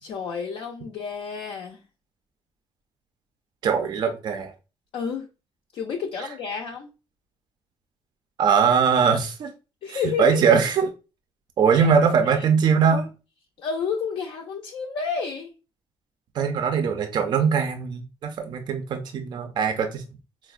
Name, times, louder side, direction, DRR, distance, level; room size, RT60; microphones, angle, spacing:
voice 1, 0.0-1.8 4.9-5.3 5.7-6.9 9.8-10.4 11.7-11.9 12.3-12.5 13.6-15.5, left 5 dB, 60° left, 0.4 m, -30 dB
voice 2, 3.6-4.5 8.4-9.5 9.9-10.9 11.6-13.1 16.4-20.0, right 6 dB, 45° right, 0.4 m, -21 dB
4.3 x 2.0 x 2.3 m
cardioid pair, 175°, 10 cm